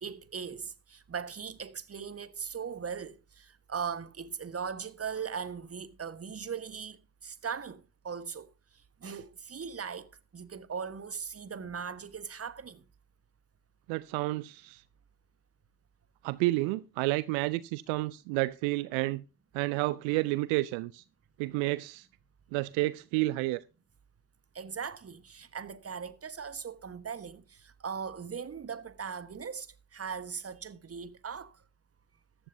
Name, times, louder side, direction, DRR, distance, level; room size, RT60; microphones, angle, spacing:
voice 1, 0.0-8.5 9.0-12.8 24.5-31.6, right 6 dB, 30° right, 1.3 m, -39 dB
voice 2, 13.9-14.8 16.2-19.2 19.5-21.0 21.4-22.1 22.5-23.6, right 20 dB, 70° right, 0.6 m, -30 dB
14.5 x 11.5 x 2.7 m
hypercardioid pair, 45°, 49 cm